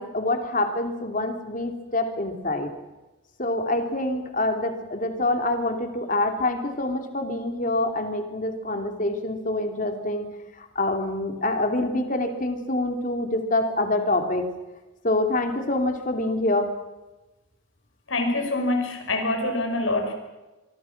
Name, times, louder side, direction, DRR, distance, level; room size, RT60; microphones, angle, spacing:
voice 1, 0.0-2.7 3.4-10.3 10.6-14.4 15.0-16.7, left 2 dB, 40° left, 5 dB, 3.2 m, -26 dB
voice 2, 18.1-20.1, left 2 dB, 80° left, 5 dB, 5.6 m, -25 dB
24.5 x 24.0 x 6.1 m, 1.1 s
head